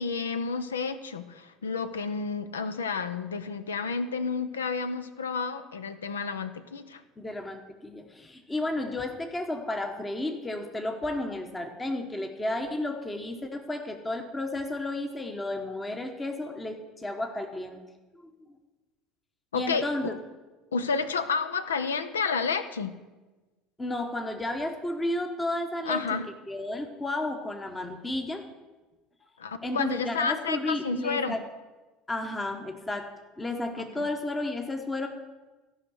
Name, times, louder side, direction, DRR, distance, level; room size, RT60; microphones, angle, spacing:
voice 1, 0.0-7.0 19.5-20.2 20.7-22.9 25.9-26.3 29.4-31.4 33.8-34.1, left 5 dB, 85° left, 12 dB, 0.5 m, -30 dB
voice 2, 7.2-17.8 18.1-18.3 19.5-20.2 23.8-26.2 26.5-28.5 29.6-31.4 32.1-33.1 33.4-35.1, left 2 dB, 20° left, 5 dB, 1.1 m, -32 dB
13.5 x 5.5 x 6.3 m, 1.2 s
hypercardioid pair, 70°, 0 cm